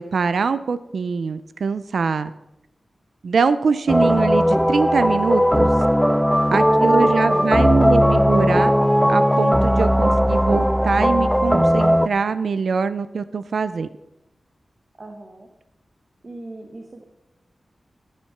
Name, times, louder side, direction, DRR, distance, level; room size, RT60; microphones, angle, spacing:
voice 1, 0.0-2.3 3.2-5.7 6.5-8.7 9.1-13.9, right 5 dB, 85° right, 13 dB, 0.4 m, -23 dB
sound 1, 3.9-12.1, equal, ahead, 0.4 m, -17 dB
voice 2, 6.3-8.2 15.0-15.5 16.2-17.0, right 2 dB, 40° right, 4 dB, 1.3 m, -34 dB
13.0 x 7.4 x 5.8 m, 0.90 s
wide cardioid pair, 95°, 0 cm